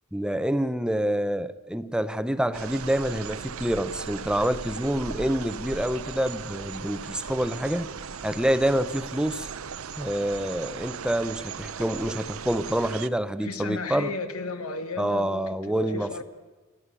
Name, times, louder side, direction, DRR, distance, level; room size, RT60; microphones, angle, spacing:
voice 1, 0.1-7.9 8.2-9.5 10.0-14.1 15.0-16.2, right 1 dB, 5° right, 12 dB, 0.7 m, -27 dB
sound 1, 2.5-13.1, right 6 dB, 75° right, 0.8 m, -37 dB
voice 2, 13.4-16.2, left 3 dB, 85° left, 9 dB, 1.9 m, -34 dB
30.0 x 13.0 x 9.7 m, 1.3 s
head